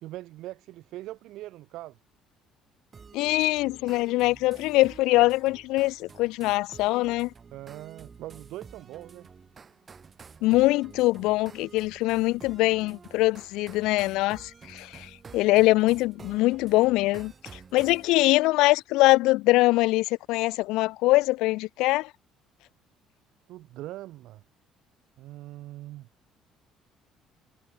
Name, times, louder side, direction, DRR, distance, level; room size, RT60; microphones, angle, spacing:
voice 1, 0.0-2.0 7.5-9.3 23.5-24.4 25.2-26.1, right 16 dB, 65° right, 3.5 m, -41 dB
sound 1, 2.9-18.1, right 5 dB, 25° right, 3.0 m, -50 dB
voice 2, 3.1-7.3 10.4-22.1, left 20 dB, 85° left, 0.8 m, -23 dB
cardioid pair, 160°, 0 cm